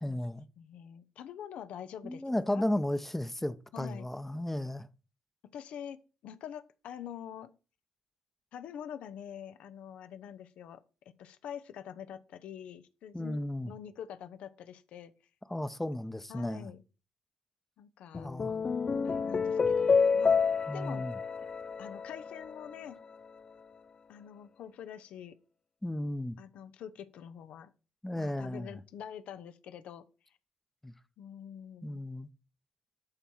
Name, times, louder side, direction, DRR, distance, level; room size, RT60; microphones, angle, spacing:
voice 1, 0.0-0.5 2.0-4.9 13.1-13.7 15.5-16.7 18.1-18.6 20.7-21.2 25.8-26.4 28.0-28.8 30.8-30.9 31.8-32.3, left 1 dB, 10° left, 0.9 m, -34 dB
voice 2, 0.6-2.2 2.5-2.6 3.7-4.1 5.5-7.5 8.5-10.8 11.2-15.1 16.3-16.8 17.8-18.3 19.0-20.4 20.7-21.0 21.8-23.0 24.1-25.4 26.4-27.7 28.1-30.0 31.2-32.0, left 9 dB, 65° left, 0.8 m, -45 dB
sound 1, 18.1-22.7, left 5 dB, 40° left, 0.4 m, -29 dB
12.5 x 4.6 x 4.4 m
hypercardioid pair, 45°, 2 cm